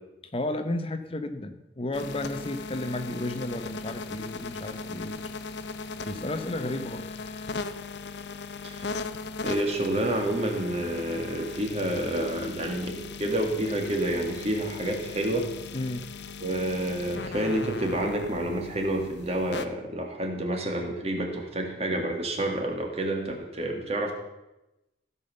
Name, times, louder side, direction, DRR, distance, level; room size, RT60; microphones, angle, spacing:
voice 1, 0.3-5.2 6.1-7.1 15.7-16.1, left 1 dB, 30° left, 9 dB, 0.8 m, -33 dB
sound 1, 1.9-19.7, left 4 dB, 70° left, 0.8 m, -38 dB
voice 2, 9.4-15.5 16.4-24.1, right 1 dB, 35° right, 2 dB, 2.0 m, -29 dB
16.0 x 5.6 x 6.7 m, 0.97 s
head